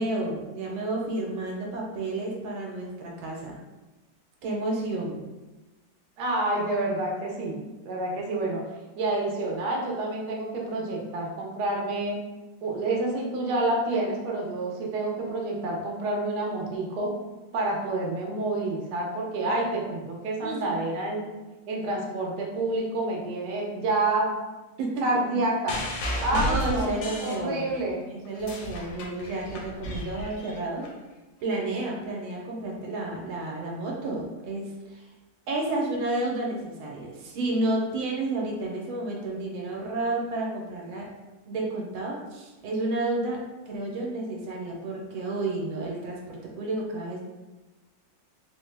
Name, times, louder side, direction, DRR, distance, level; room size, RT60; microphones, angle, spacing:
voice 1, 0.0-3.6 4.4-5.2 20.4-20.6 24.8-25.2 26.3-27.7 28.1-30.9 31.4-35.0 35.5-41.1 41.5-47.2, right 2 dB, 85° right, -1 dB, 1.4 m, -31 dB
voice 2, 6.2-7.6 7.8-8.6 9.0-12.2 12.6-17.1 17.5-21.3 21.7-24.3 25.0-25.8 26.2-28.0, right 2 dB, 65° right, -2 dB, 1.1 m, -28 dB
sound 1, 25.7-27.9 28.3-30.9 31.7-31.8, left 1 dB, 85° left, 1.5 m, -33 dB
3.8 x 2.0 x 3.2 m, 1.1 s
omnidirectional pair, 2.2 m